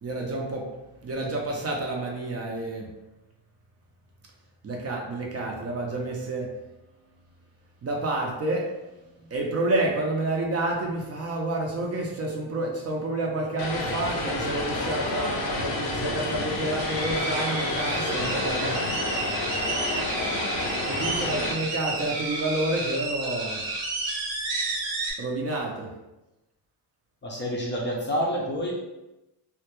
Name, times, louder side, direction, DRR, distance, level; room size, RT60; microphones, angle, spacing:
voice 1, 0.0-0.7 1.0-2.9 4.6-6.5 7.8-8.7 9.2-19.1 20.8-23.6 25.2-25.9, right 2 dB, 35° right, -1 dB, 0.4 m, -29 dB
Vehicle, 13.6-21.5, left 2 dB, 80° left, 0.6 m, -29 dB
sound 1, 16.8-25.1, right 3 dB, 75° right, 0.8 m, -31 dB
voice 2, 27.2-28.7, equal, 30° left, -3 dB, 0.4 m, -28 dB
2.1 x 2.1 x 2.9 m, 0.99 s
cardioid pair, 105°, 43 cm